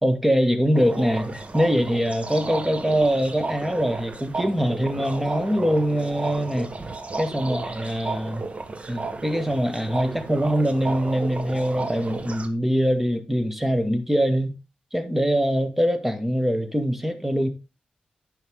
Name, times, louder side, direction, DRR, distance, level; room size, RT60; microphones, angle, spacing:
voice 1, 0.0-6.7 7.2-8.5 8.8-14.6 14.9-17.5, equal, 5° right, 1.7 m, -23 dB
sound 1, 0.7-12.5, right 3 dB, 40° right, 1.3 m, -33 dB
9.9 x 5.7 x 3.7 m
supercardioid pair, 45°, 3 cm